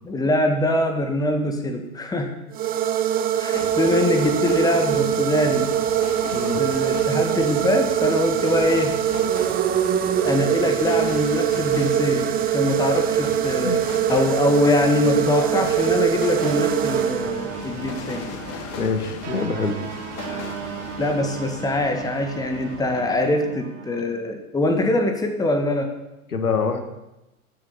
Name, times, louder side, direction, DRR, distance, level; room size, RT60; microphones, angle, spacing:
voice 1, 0.0-2.4 3.4-5.7 6.5-9.0 10.2-12.3 12.5-13.8 14.1-18.3 21.0-25.9, left 1 dB, 10° left, 5 dB, 1.6 m, -23 dB
sound 1, 2.5-17.7, right 10 dB, 20° right, 0.7 m, -23 dB
sound 2, 3.5-23.3, left 6 dB, 35° left, 1.9 m, -38 dB
voice 2, 6.3-6.6 13.6-13.8 18.8-19.8 26.3-26.8, left 4 dB, 85° left, 7 dB, 1.8 m, -25 dB
sound 3, 16.4-24.0, right 8 dB, 55° right, 2.0 m, -36 dB
14.0 x 7.6 x 7.1 m, 0.94 s
hypercardioid pair, 105°, 44 cm